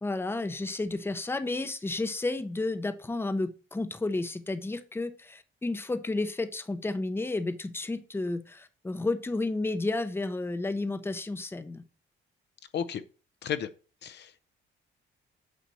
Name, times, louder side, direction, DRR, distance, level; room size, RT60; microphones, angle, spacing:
voice 1, 0.0-11.8, left 2 dB, 10° left, 0.7 m, -32 dB
voice 2, 14.0-14.4, left 8 dB, 60° left, 0.6 m, -33 dB
8.3 x 2.9 x 6.1 m
cardioid pair, 90°, 20 cm